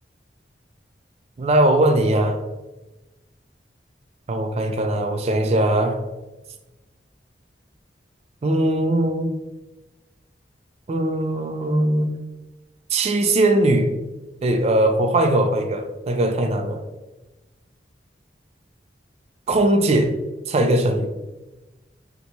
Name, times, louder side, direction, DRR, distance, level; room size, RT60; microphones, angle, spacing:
voice 1, 1.4-2.4 4.3-6.0 8.4-9.4 10.9-12.1 12.9-13.9 14.4-16.8 19.5-20.1 20.5-21.1, right 1 dB, 35° right, 6 dB, 0.3 m, -20 dB
3.0 x 2.1 x 4.0 m, 1.1 s
head